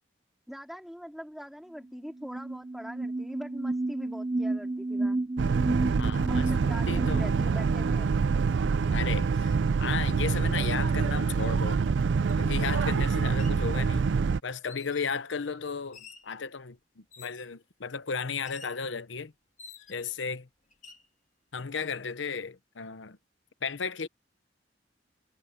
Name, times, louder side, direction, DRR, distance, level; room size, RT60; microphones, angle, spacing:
voice 1, 0.5-5.2 6.3-8.1, equal, ahead, 3.2 m, -42 dB
sound 1, 1.8-1.9 2.2-7.9, right 2 dB, 20° right, 0.6 m, -32 dB
Boat Water vehicle, 5.4-14.4, right 5 dB, 75° right, 0.4 m, -26 dB
voice 2, 5.9-6.5 6.9-7.3 8.9-9.5 9.8-11.8 12.4-14.1 14.4-19.3 19.9-20.5 21.5-23.2 23.6-24.1, left 5 dB, 90° left, 0.9 m, -34 dB
sound 2, 12.3-12.4 13.2-13.6 14.6-15.2 15.9-16.3 17.1-17.5 18.5-18.8 19.6-20.2 20.7-21.1, left 6 dB, 40° left, 1.9 m, -50 dB
head